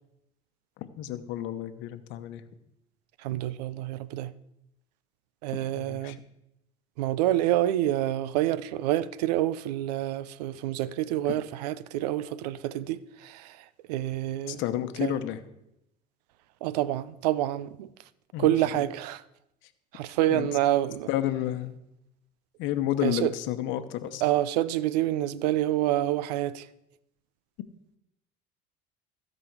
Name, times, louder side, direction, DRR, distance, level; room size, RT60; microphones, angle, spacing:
voice 1, 0.8-2.4 5.5-6.2 11.3-11.4 14.5-15.4 18.3-18.8 20.3-20.5 21.1-21.8 22.6-24.2, left 12 dB, 70° left, 1.0 m, -31 dB
voice 2, 3.2-4.3 5.4-6.2 7.0-13.6 13.9-14.6 15.0-15.2 16.6-17.9 18.4-19.2 19.9-21.1 23.0-23.3 24.2-26.7, right 13 dB, 90° right, 0.5 m, -27 dB
16.0 x 5.4 x 4.7 m
supercardioid pair, 85°, 20 cm